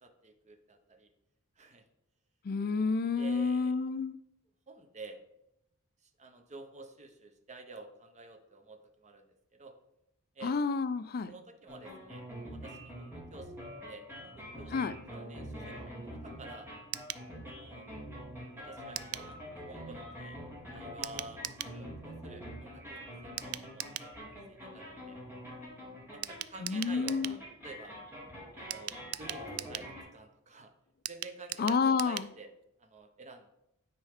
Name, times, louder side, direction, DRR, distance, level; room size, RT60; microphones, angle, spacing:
voice 1, 0.0-1.1 1.6-1.8 3.2-3.9 4.7-5.2 6.0-9.2 9.5-9.7 10.3-10.5 11.3-16.7 17.4-17.9 18.6-20.4 20.7-24.2 24.5-25.2 26.1-28.0 28.5-30.7 31.1-32.5 32.8-33.5, right 3 dB, 30° right, 5 dB, 0.8 m, -50 dB
voice 2, 2.4-4.2 10.4-11.3 14.7-15.0 26.6-27.4 31.6-32.3, left 4 dB, 45° left, 11 dB, 0.4 m, -30 dB
sound 1, 11.7-30.0, equal, 10° right, 2.6 m, -45 dB
sound 2, 16.9-17.3 19.0-19.3 21.0-21.8 23.4-24.1 26.2-27.4 28.7-29.9 31.1-32.3 32.6-32.7 33.0-33.1, right 14 dB, 75° right, 0.3 m, -40 dB
9.7 x 4.5 x 3.5 m, 0.82 s
head